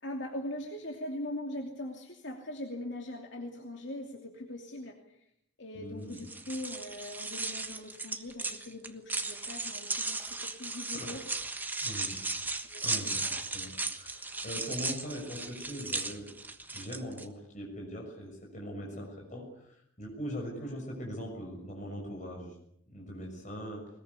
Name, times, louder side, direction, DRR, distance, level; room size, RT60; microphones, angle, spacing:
voice 1, 0.0-5.2 5.6-11.3 12.6-13.5 20.6-20.8, left 1 dB, 65° left, 2 dB, 2.8 m, -41 dB
voice 2, 5.7-6.2 10.9-11.2 11.8-12.2 12.8-13.2 13.5-16.3 16.7-22.5 22.9-23.9, equal, 40° left, 0 dB, 6.6 m, -41 dB
sound 1, 6.1-17.2, right 3 dB, 10° right, 1.3 m, -36 dB
21.5 x 21.0 x 8.3 m, 0.73 s
head